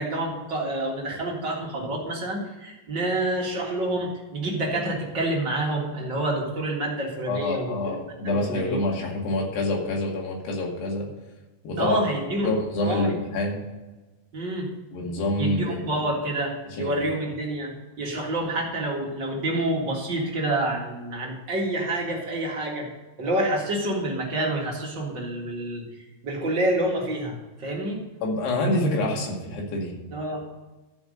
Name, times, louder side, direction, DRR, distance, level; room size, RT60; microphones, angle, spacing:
voice 1, 0.0-7.9 8.2-8.9 11.8-12.5 12.8-13.2 14.3-14.7 15.4-22.9 23.2-25.8 26.2-28.0 30.1-30.4, right 1 dB, 40° right, -2 dB, 1.8 m, -28 dB
voice 2, 7.3-11.1 11.6-12.0 12.4-13.6 14.9-16.0 16.7-16.9 28.2-29.9, left 2 dB, 85° left, -1 dB, 4.3 m, -27 dB
13.0 x 5.3 x 6.5 m, 1.1 s
omnidirectional pair, 4.7 m